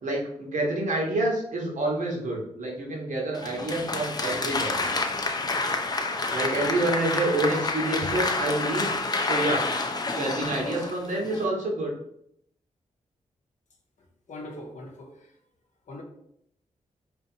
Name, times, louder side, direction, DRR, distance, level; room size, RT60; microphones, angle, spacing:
voice 1, 0.0-4.8 6.3-9.6 10.1-11.9, right 2 dB, 65° right, 0.8 m, -28 dB
Applause, 3.3-11.4, left 3 dB, 30° left, 0.4 m, -28 dB
voice 2, 14.3-15.1 15.9-16.0, left 1 dB, 65° left, 0.7 m, -40 dB
2.8 x 2.2 x 2.6 m
cardioid pair, 45°, 14 cm